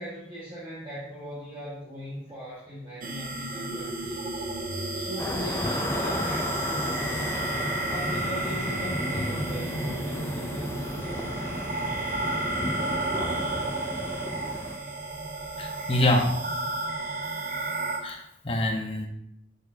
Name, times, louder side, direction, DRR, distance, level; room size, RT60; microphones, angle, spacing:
voice 1, 0.0-4.4 4.9-7.5 7.9-11.5, equal, 25° right, -8 dB, 1.4 m, -40 dB
sound 1, 3.0-18.0, right 2 dB, 50° right, 0.8 m, -32 dB
sound 2, 5.2-14.8, left 1 dB, 15° left, 0.4 m, -34 dB
voice 2, 15.6-16.3 18.0-19.1, left 1 dB, 30° left, 1 dB, 1.0 m, -25 dB
6.9 x 6.2 x 2.7 m, 0.77 s
head